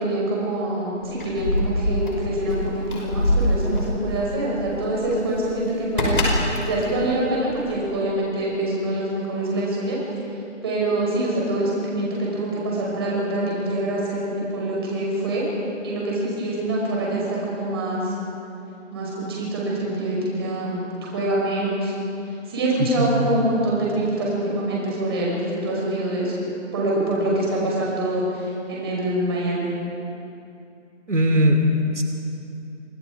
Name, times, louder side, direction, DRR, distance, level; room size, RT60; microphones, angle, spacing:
voice 1, 0.0-6.3 6.6-10.0 10.6-15.4 15.8-18.1 18.9-21.9 22.3-26.4 26.7-29.7, right 1 dB, 20° right, -4 dB, 5.4 m, -25 dB
Keys jangling, 1.0-7.9, left 1 dB, 45° left, 5.5 m, -25 dB
voice 2, 31.1-32.0, equal, 70° right, 3 dB, 3.0 m, -19 dB
29.5 x 25.5 x 4.9 m, 2.7 s
figure-of-eight pair, 170°, 37 cm